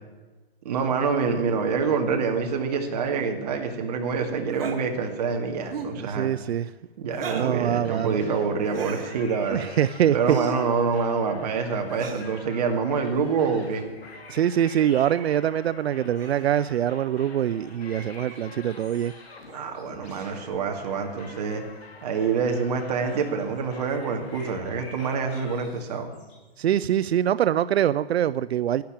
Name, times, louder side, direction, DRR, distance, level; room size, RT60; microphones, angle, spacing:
voice 1, 0.6-6.3 7.0-9.6 10.1-13.8 19.5-21.6 22.0-26.1, right 5 dB, 40° right, 4 dB, 2.2 m, -26 dB
sound 1, 4.5-4.8 5.6-6.0 7.1-7.6 8.7-9.2 10.2-10.7 11.9-12.3 13.6-13.9 15.0-15.2 16.1-16.6 18.3-18.4 19.5-19.6 20.3-20.5 21.3-21.5 23.0-23.4, right 4 dB, 65° right, 2.4 m, -36 dB
voice 2, 6.0-6.7 7.3-8.2 9.5-10.4 14.3-19.1 26.6-28.8, right 10 dB, 90° right, 15 dB, 0.5 m, -24 dB
sound 2, 7.8-25.6, left 4 dB, 80° left, 3.7 m, -47 dB
sound 3, 8.7-10.0 13.8-15.2 17.8-19.8 20.4-20.5 21.1-21.2 21.3-21.4 23.8-26.5, left 1 dB, 20° left, 4.6 m, -48 dB
11.5 x 10.0 x 8.8 m, 1.2 s
hypercardioid pair, 165°, 31 cm